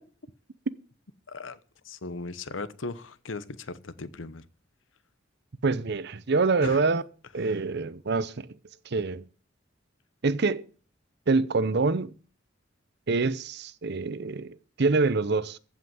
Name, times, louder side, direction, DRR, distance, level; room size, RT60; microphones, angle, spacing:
voice 1, 1.3-1.6 1.8-4.5 6.6-6.8 7.4-7.5, left 3 dB, 80° left, 0.9 m, -37 dB
voice 2, 5.6-7.0 7.3-8.5 8.9-9.3 10.2-10.7 11.3-12.1 13.1-15.6, right 3 dB, 60° right, 0.7 m, -26 dB
15.0 x 5.8 x 9.4 m
head